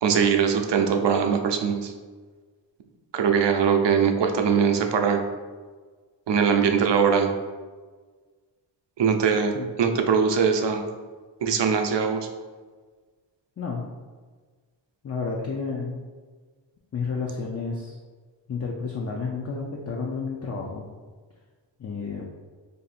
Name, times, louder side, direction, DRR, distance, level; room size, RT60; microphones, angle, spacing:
voice 1, 0.0-1.9 3.1-5.2 6.3-7.3 9.0-9.5 9.8-10.8 11.4-12.3, right 6 dB, 65° right, 5 dB, 0.5 m, -21 dB
voice 2, 15.0-15.9 16.9-17.9 18.5-20.9 21.8-22.2, left 4 dB, 35° left, -1 dB, 0.4 m, -31 dB
2.7 x 2.6 x 4.1 m, 1.4 s
wide cardioid pair, 80°, 46 cm